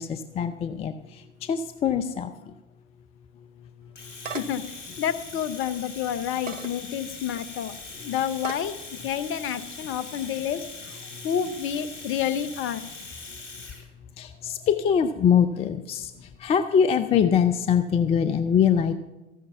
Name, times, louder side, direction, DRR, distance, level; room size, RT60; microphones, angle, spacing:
voice 1, 0.0-2.5 11.1-11.3 14.2-18.9, left 7 dB, 15° left, 10 dB, 0.4 m, -23 dB
sound 1, 3.9-4.7 5.2-5.3 6.3-6.7 7.4-7.5 8.4-8.7, right 6 dB, 80° right, 0.7 m, -36 dB
Domestic sounds home sounds, 4.0-13.8, left 3 dB, 75° left, 2.5 m, -41 dB
voice 2, 4.3-4.7 5.0-10.7 11.2-12.8, left 9 dB, 35° left, 14 dB, 0.8 m, -29 dB
14.0 x 10.0 x 5.8 m, 1.1 s
figure-of-eight pair, 75°, 37 cm